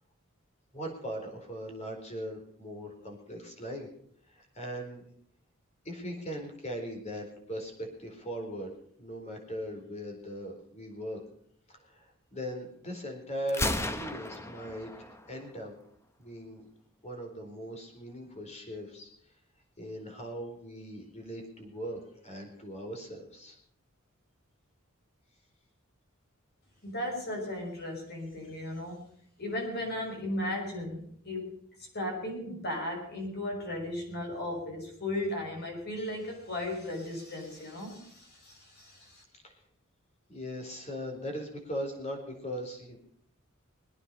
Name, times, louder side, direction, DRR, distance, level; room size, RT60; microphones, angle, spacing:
voice 1, 0.7-3.9 4.3-5.0 5.8-8.7 9.0-11.2 11.7-14.9 15.3-15.8 16.2-16.6 17.0-19.1 19.8-23.6 39.3-39.5 40.3-43.0, equal, 35° left, 2 dB, 4.4 m, -39 dB
Gunshot gunfire, 13.5-15.5, left 1 dB, 15° left, 1.0 m, -34 dB
voice 2, 26.8-29.1 29.4-39.2, left 1 dB, 50° left, 1 dB, 5.7 m, -36 dB
22.5 x 9.7 x 5.5 m, 0.63 s
head